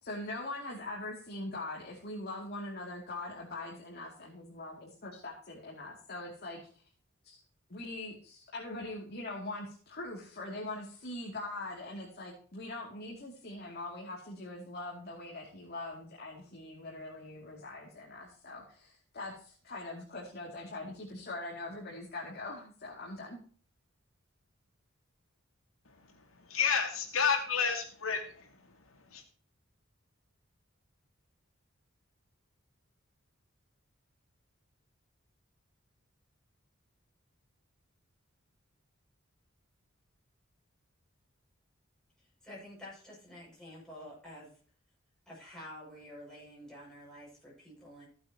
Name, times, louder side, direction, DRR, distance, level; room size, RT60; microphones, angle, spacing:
voice 1, 0.0-6.6 7.2-7.4 7.7-23.4, left 2 dB, 50° left, -3 dB, 2.6 m, -42 dB
voice 2, 26.5-28.5 29.1-29.2, left 6 dB, 80° left, 3 dB, 2.5 m, -30 dB
voice 3, 42.4-44.5 45.3-48.1, left 1 dB, 5° left, -6 dB, 6.3 m, -49 dB
15.0 x 8.5 x 2.9 m, 0.44 s
head